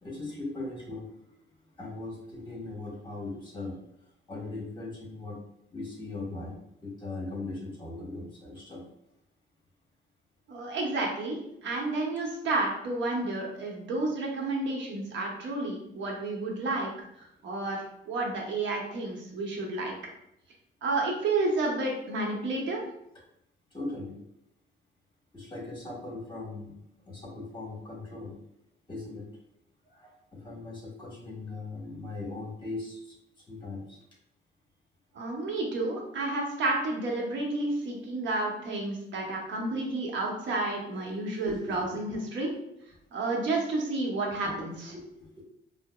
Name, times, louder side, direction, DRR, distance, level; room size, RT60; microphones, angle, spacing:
voice 1, 0.0-1.1 1.8-3.8 4.3-5.4 5.7-8.8 23.7-24.2 25.3-26.7 27.0-28.4 28.9-29.2 29.9-33.1 33.5-34.0 41.5-41.9 42.4-42.5 44.4-44.6 44.9-45.4, left 2 dB, 25° left, -3 dB, 1.3 m, -39 dB
voice 2, 10.5-19.9 20.8-22.8 35.1-42.5 43.1-44.9, right 2 dB, 70° right, -1 dB, 0.9 m, -31 dB
4.7 x 2.1 x 2.3 m, 0.80 s
cardioid pair, 90°, 20 cm